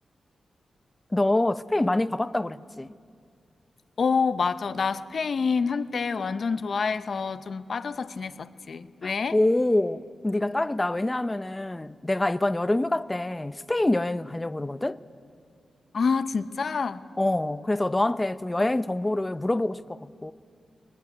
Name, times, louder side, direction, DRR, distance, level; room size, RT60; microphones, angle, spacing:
voice 1, 1.1-2.9 9.0-15.0 17.2-20.3, left 1 dB, 20° left, 0.6 m, -26 dB
voice 2, 4.0-9.4 15.9-17.0, left 5 dB, 60° left, 0.8 m, -27 dB
21.5 x 19.5 x 9.5 m
cardioid pair, 85°, 0 cm